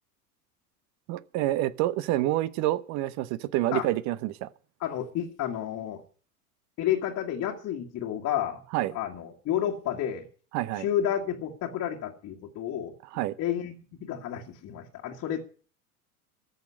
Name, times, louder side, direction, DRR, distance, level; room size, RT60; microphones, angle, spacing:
voice 1, 1.1-4.5 8.7-8.9 10.5-10.9 13.1-13.3, right 15 dB, 40° right, 0.9 m, -28 dB
voice 2, 4.8-6.0 6.8-8.6 8.9-10.3 10.8-12.9 13.4-13.7 14.0-15.4, left 10 dB, 35° left, 1.8 m, -30 dB
14.0 x 6.6 x 9.6 m
figure-of-eight pair, 85°, 46 cm